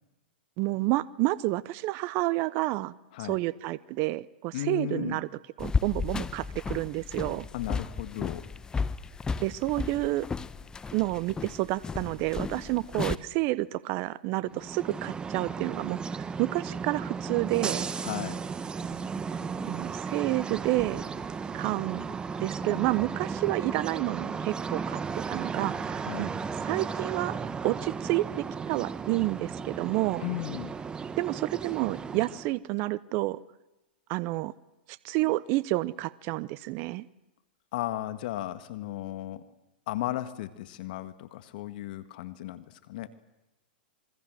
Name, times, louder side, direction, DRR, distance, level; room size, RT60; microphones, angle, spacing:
voice 1, 0.6-2.9 3.2-5.3 5.6-7.5 9.4-10.3 10.9-17.9 19.7-21.0 21.5-22.1 22.4-25.0 25.3-26.3 26.6-27.4 27.6-30.2 31.2-33.4 34.1-34.5 35.0-37.1, right 19 dB, 45° right, 19 dB, 0.8 m, -29 dB
voice 2, 4.5-5.2 7.5-8.5 18.0-18.4 26.0-26.3 30.2-30.7 37.7-39.4 39.9-43.1, left 14 dB, 60° left, 11 dB, 1.6 m, -35 dB
sound 1, 5.6-13.2, left 5 dB, 15° left, 1.0 m, -34 dB
sound 2, 14.5-32.6, right 5 dB, 15° right, 1.2 m, -35 dB
27.0 x 23.5 x 7.8 m, 0.98 s
hypercardioid pair, 115°, 5 cm